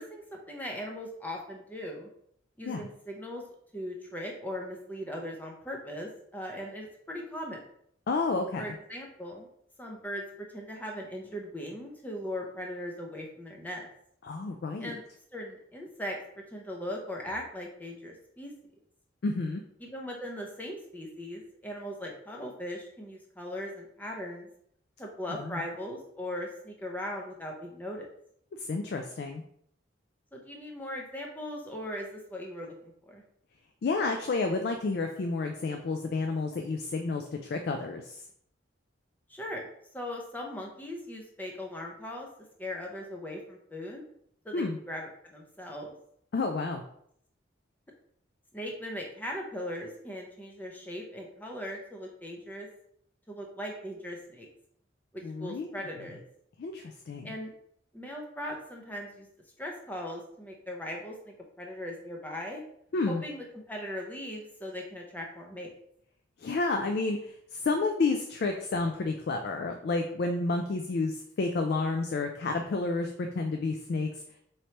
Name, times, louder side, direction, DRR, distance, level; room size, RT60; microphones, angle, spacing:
voice 1, 0.0-2.1 2.6-3.4 3.7-7.6 8.6-9.5 9.8-13.9 14.8-15.0 15.3-18.5 19.8-24.5 25.0-28.1 30.3-33.2 39.3-39.7 39.9-42.3 42.6-44.0 44.4-46.0 48.5-52.7 53.3-54.5 55.1-56.2 57.2-57.5 57.9-59.3 59.6-62.6 63.1-65.7, left 1 dB, 10° left, 0 dB, 0.6 m, -39 dB
voice 2, 8.1-8.6 14.2-14.9 19.2-19.6 25.4-25.6 28.6-29.4 33.8-38.2 44.5-44.8 46.3-46.8 55.2-55.8 56.6-57.3 62.9-63.2 66.4-74.1, left 3 dB, 50° left, 5 dB, 0.3 m, -30 dB
4.4 x 3.2 x 2.8 m, 0.69 s
head